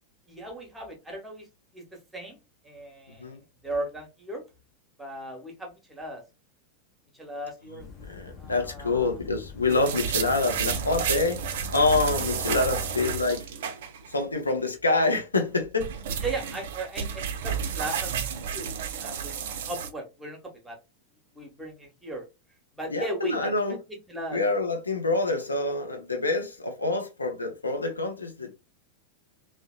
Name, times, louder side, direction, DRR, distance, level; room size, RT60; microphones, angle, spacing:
voice 1, 0.3-1.5 1.7-4.4 5.0-6.2 7.1-7.9 8.4-9.2 16.2-19.3 19.6-20.4 20.6-20.8 21.3-22.2 22.7-24.4, right 1 dB, 5° right, 0.9 m, -37 dB
sound 1, 7.8-13.2, left 7 dB, 35° left, 0.7 m, -43 dB
voice 2, 8.0-11.4 11.7-13.5 14.1-15.9 22.9-23.8 24.3-28.5, left 3 dB, 80° left, 0.5 m, -26 dB
sound 2, 9.7-14.2 14.5-14.6 15.5-19.9, right 8 dB, 55° right, 0.4 m, -31 dB
2.7 x 2.0 x 2.2 m
figure-of-eight pair, 90°, 0 cm